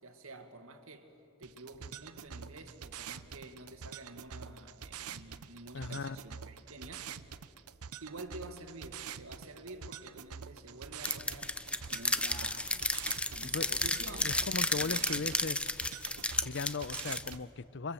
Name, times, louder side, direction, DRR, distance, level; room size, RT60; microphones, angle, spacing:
voice 1, 0.0-1.1 1.4-7.2 8.0-11.6 11.9-12.9 13.3-14.3 14.7-15.3, right 2 dB, 65° right, 2.1 m, -49 dB
sound 1, 1.4-17.4, right 7 dB, 80° right, 0.8 m, -46 dB
voice 2, 5.7-6.2 13.5-13.8 14.2-15.6 16.2-17.9, left 4 dB, 50° left, 0.6 m, -38 dB
sound 2, 11.0-17.3, left 2 dB, 5° left, 0.5 m, -33 dB
28.0 x 24.5 x 7.8 m
head